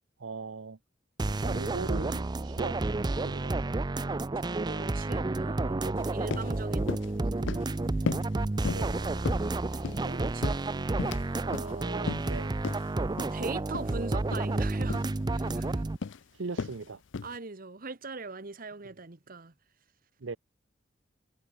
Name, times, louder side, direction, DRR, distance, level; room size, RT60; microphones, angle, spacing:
voice 1, 0.2-0.8 1.4-2.8 3.2-3.5 8.7-9.0 12.2-12.5 16.3-17.0 20.2-20.4, right 4 dB, 85° right, 0.8 m, -38 dB
sound 1, 1.2-16.0, right 2 dB, 20° right, 0.5 m, -30 dB
voice 2, 4.3-7.7 8.9-9.4 9.7-12.2 13.3-15.0 15.3-15.8 17.2-19.5, right 3 dB, 50° right, 1.4 m, -41 dB
sound 2, 6.0-6.1 6.3-6.5 6.9-7.1 7.5-7.7 8.1-8.3 8.6-8.9 9.2-10.1 10.4-11.3 11.5-11.7 12.1-12.3 12.6-12.8 13.2-13.4 13.7-13.9 14.3-14.5 14.9-15.1 15.5-15.7 16.0-16.2 16.6-16.8 17.1-17.4, left 4 dB, 70° left, 0.5 m, -35 dB
head